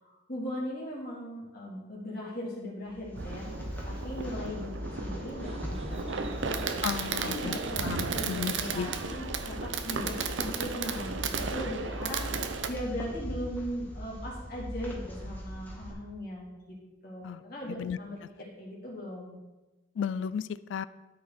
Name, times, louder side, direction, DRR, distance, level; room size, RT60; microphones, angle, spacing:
voice 1, 0.0-3.5 3.8-6.6 7.1-12.2 12.7-16.5 17.0-19.4, equal, 55° left, -5 dB, 2.8 m, -39 dB
sound 1, 2.8-15.9, equal, 10° left, 1.6 m, -40 dB
Fireworks, 3.2-12.7, right 5 dB, 85° right, 0.7 m, -34 dB
sound 2, 5.4-11.6, right 1 dB, 35° right, 0.9 m, -51 dB
voice 2, 6.8-7.6 7.8-8.9 17.2-17.4 17.8-18.0 20.0-20.9, left 7 dB, 85° left, 16 dB, 0.3 m, -34 dB
12.5 x 5.2 x 4.1 m, 1.1 s
head